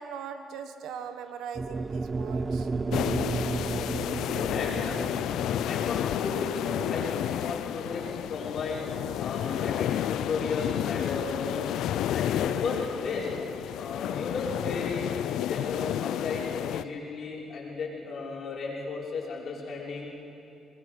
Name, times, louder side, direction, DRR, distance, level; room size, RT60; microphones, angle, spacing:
voice 1, 0.0-2.7, right 7 dB, 85° right, 9 dB, 1.3 m, -40 dB
sound 1, 1.6-9.8, right 4 dB, 30° right, 0.5 m, -34 dB
sound 2, 2.9-16.8, left 11 dB, 85° left, 0.5 m, -31 dB
voice 2, 3.9-8.9 9.2-11.8 12.1-13.3 13.8-15.1 15.4-20.1, left 4 dB, 55° left, -3 dB, 5.5 m, -35 dB
22.5 x 21.0 x 6.6 m, 2.7 s
cardioid pair, 90°, 0 cm